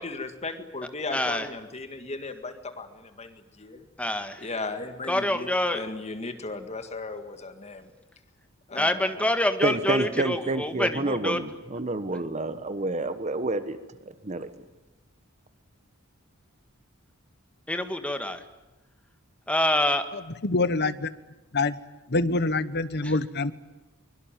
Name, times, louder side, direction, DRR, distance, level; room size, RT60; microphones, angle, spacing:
voice 1, 0.0-3.8 4.4-7.9 8.7-9.3, left 3 dB, 30° left, 8 dB, 1.9 m, -36 dB
voice 2, 1.1-1.5 4.0-4.5 5.1-5.8 8.8-11.4 17.7-18.4 19.5-20.1 23.0-23.1, left 1 dB, 5° left, 7 dB, 1.8 m, -26 dB
voice 3, 9.6-13.8 14.2-14.5, right 2 dB, 35° right, 11 dB, 1.2 m, -28 dB
voice 4, 20.1-21.1 21.5-21.8 22.1-23.5, left 3 dB, 50° left, 14 dB, 1.2 m, -26 dB
23.5 x 23.0 x 9.2 m, 1.0 s
head